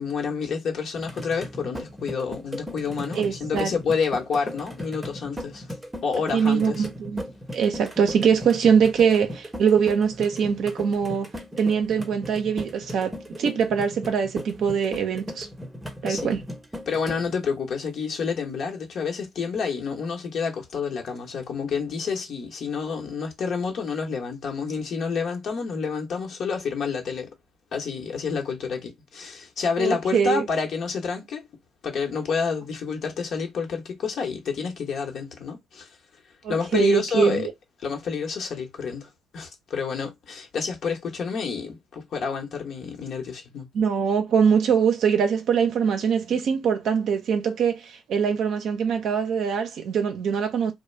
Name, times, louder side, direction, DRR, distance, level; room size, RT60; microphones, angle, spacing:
voice 1, 0.0-5.7 6.0-6.9 16.0-16.4 16.9-27.3 27.7-31.5 31.8-35.9 36.5-37.5 37.8-43.7, left 5 dB, 60° left, 0.9 m, -29 dB
sound 1, 1.0-17.3, equal, 10° right, 0.7 m, -37 dB
voice 2, 3.2-3.7 6.3-7.2 7.5-11.3 11.6-13.1 13.4-15.5 16.0-16.4 29.8-30.5 36.4-37.5 43.7-50.7, right 7 dB, 65° right, 0.5 m, -22 dB
2.3 x 2.0 x 3.2 m
supercardioid pair, 70°, 0 cm